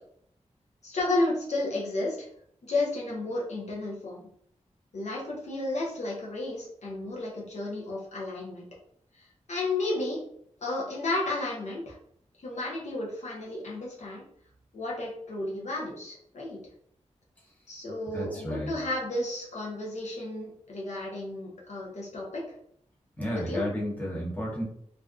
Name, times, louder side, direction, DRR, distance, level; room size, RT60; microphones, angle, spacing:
voice 1, 0.8-2.3 2.7-4.3 4.9-8.6 9.1-10.2 10.6-11.9 12.4-14.2 14.7-16.6 17.7-22.4 23.3-23.6, left 2 dB, 65° left, -4 dB, 0.7 m, -32 dB
voice 2, 18.1-18.7 23.2-24.6, equal, 15° left, -5 dB, 0.9 m, -32 dB
2.5 x 2.2 x 2.3 m, 0.67 s
wide cardioid pair, 75°, 12 cm